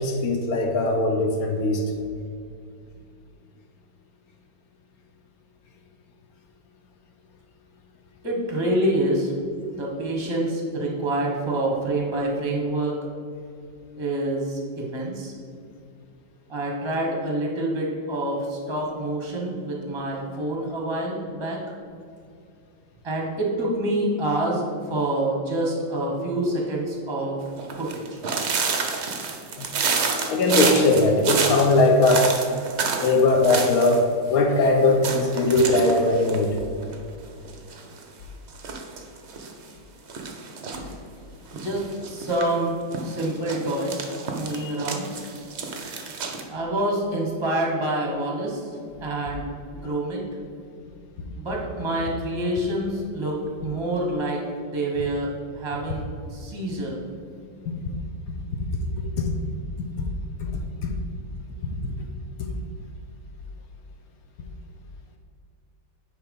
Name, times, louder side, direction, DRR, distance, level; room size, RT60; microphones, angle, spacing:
voice 1, 0.0-1.8 29.6-29.7 30.3-32.3 33.0-36.6 44.6-44.7 57.7-57.8 60.0-60.1 60.4-60.5 60.8-60.9, left 2 dB, 70° left, 4 dB, 0.9 m, -20 dB
voice 2, 8.2-9.3 9.7-13.0 14.0-15.3 16.5-21.6 23.0-27.4 27.8-28.2 41.5-42.7 43.0-45.0 46.5-48.7 49.0-49.4 49.7-50.2 51.3-55.3 55.5-56.0 56.3-57.0, right 1 dB, 20° right, -1 dB, 0.9 m, -27 dB
sound 1, 27.6-34.0 34.3-34.4 34.6-34.7 35.0-37.1 37.5-38.0 38.5-39.5 40.1-40.9 41.5-42.4 42.9-46.4, right 4 dB, 60° right, 0.7 m, -28 dB
9.0 x 3.3 x 5.3 m, 2.3 s
omnidirectional pair, 2.1 m